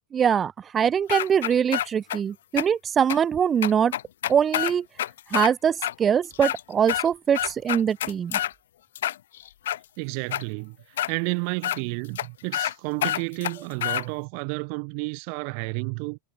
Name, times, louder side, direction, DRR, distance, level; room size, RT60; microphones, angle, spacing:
voice 1, 0.1-3.9 4.3-4.9 5.3-8.4, right 8 dB, 25° right, 0.8 m, -23 dB
sound 1, 1.1-2.2 2.6-2.7 3.1-3.2 3.6-5.5 5.8-5.9 6.3-7.1 7.3-8.5 9.0-9.8 10.3-10.4 11.0-11.1 11.6-11.8 12.2-12.3 12.5-12.7 13.0-14.0, left 12 dB, 60° left, 0.4 m, -27 dB
voice 2, 10.0-10.8 11.1-16.2, right 40 dB or more, 45° right, 1.1 m, -31 dB
figure-of-eight pair, 90°, 0 cm